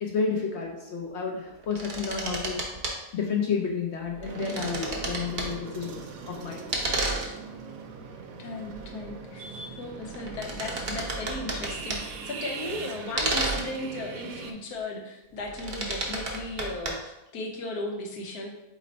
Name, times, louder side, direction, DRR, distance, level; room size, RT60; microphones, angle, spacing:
voice 1, 0.0-2.6 3.1-6.8, left 5 dB, 60° left, 0 dB, 0.7 m, -31 dB
sound 1, 1.5-2.9 4.1-5.6 6.7-7.4 8.7-9.1 9.8-12.2 13.2-13.7 15.3-16.9, right 2 dB, 45° right, 0.7 m, -31 dB
sound 2, 4.2-14.5, right 5 dB, 70° right, 1.0 m, -41 dB
voice 2, 8.4-18.5, left 2 dB, 80° left, 2 dB, 1.2 m, -36 dB
4.2 x 3.2 x 3.9 m, 0.93 s
omnidirectional pair, 1.6 m